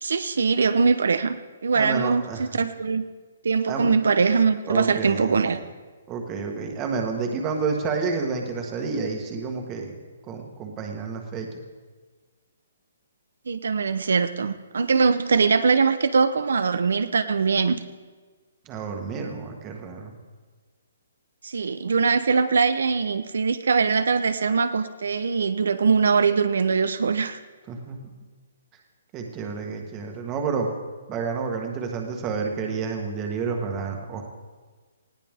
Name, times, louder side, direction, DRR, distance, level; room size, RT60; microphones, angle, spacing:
voice 1, 0.0-3.1 3.4-5.6 13.5-17.8 21.4-27.4, right 5 dB, 75° right, 10 dB, 0.8 m, -22 dB
voice 2, 1.7-2.4 3.7-3.9 4.7-5.4 6.1-9.9 10.3-11.5 18.6-20.1 27.7-28.0 29.1-30.7 31.1-34.2, right 5 dB, 15° right, 2 dB, 1.5 m, -29 dB
19.5 x 16.0 x 3.6 m, 1.4 s
hypercardioid pair, 175°, 0 cm